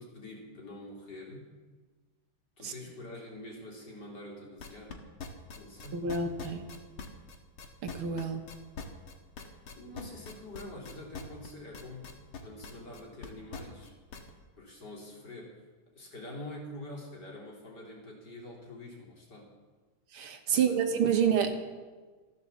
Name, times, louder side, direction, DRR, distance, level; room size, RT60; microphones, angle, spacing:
voice 1, 0.0-1.5 2.6-5.0 5.5-6.0 9.8-12.1 12.4-14.0 14.6-15.6 15.9-19.5 20.5-21.6, left 1 dB, 50° left, -2 dB, 3.9 m, -46 dB
sound 1, 4.6-14.3, left 6 dB, 75° left, 2.4 m, -43 dB
voice 2, 5.9-6.6 7.8-8.4 20.1-21.5, right 7 dB, 75° right, 5 dB, 2.2 m, -28 dB
14.5 x 12.5 x 7.2 m, 1.4 s
omnidirectional pair, 2.4 m